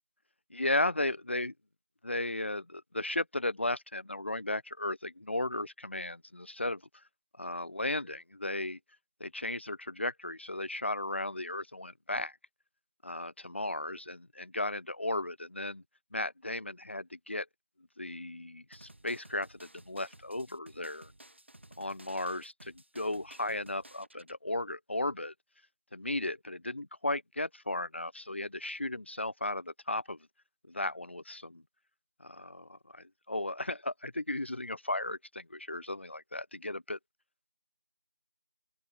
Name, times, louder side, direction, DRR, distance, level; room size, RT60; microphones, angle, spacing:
voice 1, 0.5-1.5 2.0-6.8 7.4-8.8 9.2-12.4 13.0-15.8 16.1-17.5 18.0-21.1 21.8-25.3 25.9-30.2 30.7-31.6 32.2-37.0, left 1 dB, 80° left, 1.2 m, -35 dB
sound 1, 18.7-24.4, right 1 dB, 90° right, 4.8 m, -55 dB
open air
figure-of-eight pair, 180°, 6 cm